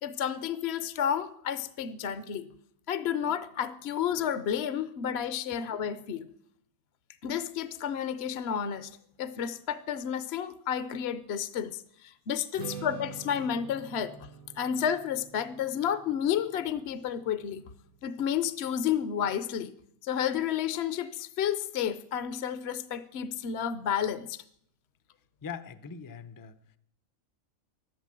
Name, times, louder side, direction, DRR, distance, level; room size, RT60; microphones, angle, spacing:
voice 1, 0.0-2.5 2.9-6.3 7.2-14.3 14.6-17.6 18.0-19.7 20.0-24.4, left 9 dB, 55° left, 14 dB, 0.8 m, -31 dB
Strum, 12.6-18.9, right 6 dB, 70° right, 1.5 m, -47 dB
voice 2, 25.4-26.6, left 6 dB, 30° left, 13 dB, 0.4 m, -42 dB
13.0 x 12.0 x 7.4 m, 0.69 s
omnidirectional pair, 1.6 m